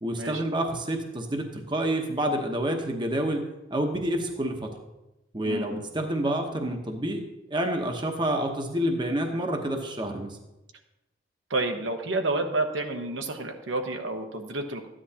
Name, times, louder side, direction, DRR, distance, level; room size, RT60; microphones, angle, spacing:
voice 1, 0.0-3.4 3.7-4.7 5.3-10.4, right 1 dB, 25° right, 4 dB, 0.9 m, -28 dB
voice 2, 11.5-14.9, right 2 dB, 80° right, 4 dB, 1.0 m, -29 dB
13.5 x 9.9 x 2.8 m, 0.98 s
head